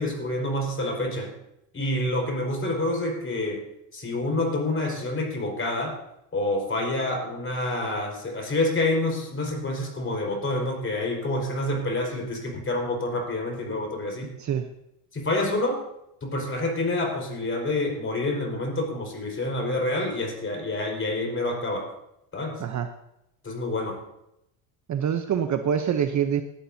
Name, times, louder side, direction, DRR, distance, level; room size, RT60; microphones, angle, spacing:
voice 1, 0.0-1.3 1.7-6.0 6.3-14.3 15.1-15.8 16.2-21.9 22.3-22.6 23.4-24.0, left 2 dB, 25° left, 1 dB, 4.8 m, -28 dB
voice 2, 24.9-26.4, right 8 dB, 35° right, 8 dB, 0.8 m, -25 dB
18.0 x 11.5 x 2.8 m, 0.83 s
supercardioid pair, 105°, 49 cm